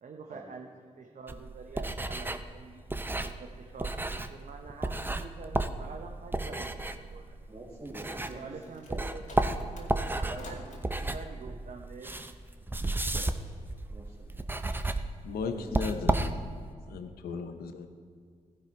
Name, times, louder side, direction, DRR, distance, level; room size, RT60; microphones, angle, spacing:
voice 1, 0.0-2.8 3.2-7.4 8.3-12.2, right 4 dB, 55° right, 3 dB, 0.8 m, -47 dB
sound 1, 1.3-8.6 8.9-16.7, right 2 dB, 15° right, 0.6 m, -33 dB
voice 2, 7.5-8.4 8.9-9.0 10.2-10.5 13.1-13.5 13.9-14.7 15.4-15.8, right 2 dB, 30° right, -4 dB, 2.0 m, -46 dB
sound 2, 7.9-10.8, left 2 dB, 55° left, 2.2 m, -50 dB
voice 3, 15.2-17.9, left 4 dB, 75° left, 8 dB, 0.7 m, -37 dB
14.0 x 5.4 x 4.5 m, 2.1 s
hypercardioid pair, 40°, 16 cm